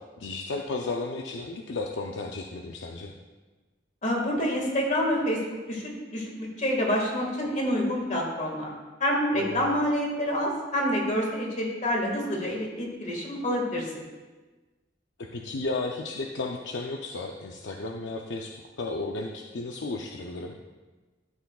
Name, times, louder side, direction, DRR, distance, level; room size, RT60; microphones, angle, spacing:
voice 1, 0.0-3.1 9.4-9.7 15.2-20.6, left 3 dB, 70° left, 1 dB, 0.5 m, -34 dB
voice 2, 4.0-5.4 5.7-8.7 9.0-14.0, equal, 40° left, -1 dB, 1.8 m, -27 dB
12.5 x 6.9 x 2.4 m, 1.2 s
head